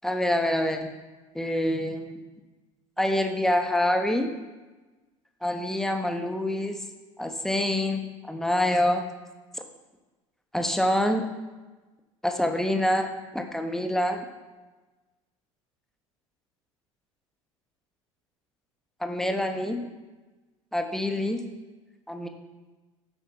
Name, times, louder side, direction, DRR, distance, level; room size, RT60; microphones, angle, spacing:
voice 1, 0.0-0.9 1.3-2.2 3.0-4.3 5.4-6.8 7.2-9.0 10.5-11.3 12.2-14.2 19.0-19.9 20.7-21.4 22.1-22.3, left 1 dB, 5° left, 4 dB, 1.1 m, -26 dB
9.0 x 5.6 x 5.9 m, 1.2 s
figure-of-eight pair, 65°, 17 cm